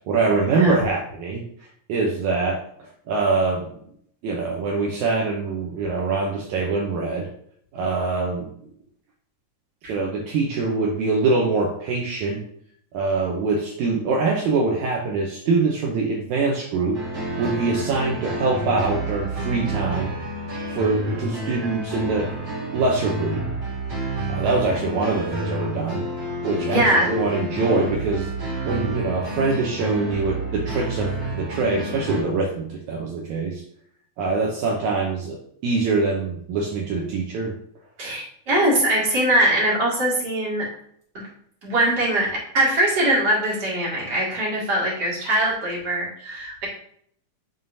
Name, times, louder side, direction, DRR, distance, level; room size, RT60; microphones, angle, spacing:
voice 1, 0.1-2.6 3.1-3.7 4.2-7.3 7.7-8.5 9.9-12.4 12.9-17.0 17.4-20.1 20.7-22.3 22.7-23.4 24.3-26.0 26.4-28.3 28.6-33.6 34.2-35.4 35.6-37.6, right 3 dB, 75° right, -1 dB, 2.1 m, -24 dB
sound 1, 16.9-32.2, right 1 dB, 55° right, 3.3 m, -29 dB
voice 2, 26.7-27.1 38.0-40.7 41.1-41.2 41.6-46.7, right 1 dB, 35° right, -5 dB, 2.4 m, -22 dB
11.0 x 3.7 x 2.7 m, 0.66 s
omnidirectional pair, 3.7 m